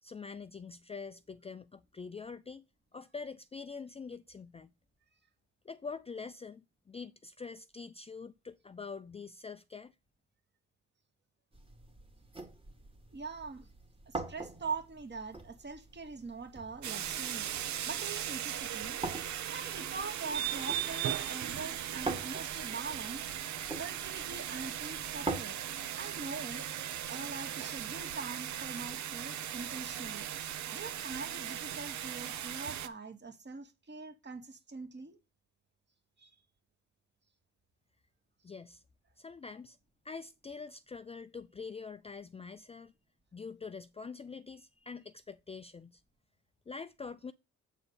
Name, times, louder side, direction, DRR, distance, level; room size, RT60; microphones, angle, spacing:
voice 1, 0.0-2.6 2.9-4.7 5.6-9.9 38.4-38.8 39.2-39.8 40.0-42.9 43.3-46.0 46.7-47.3, left 5 dB, 20° left, 0.4 m, -45 dB
sound 1, 11.5-25.4, right 2 dB, 15° right, 2.1 m, -45 dB
voice 2, 13.1-13.7 14.1-19.0 19.5-23.2 23.7-25.6 25.9-26.7 27.1-30.3 30.7-35.2 36.2-36.3, right 4 dB, 35° right, 2.3 m, -43 dB
sound 2, 16.8-32.9, right 11 dB, 65° right, 0.9 m, -38 dB
8.1 x 4.2 x 6.9 m
cardioid pair, 90°, 30 cm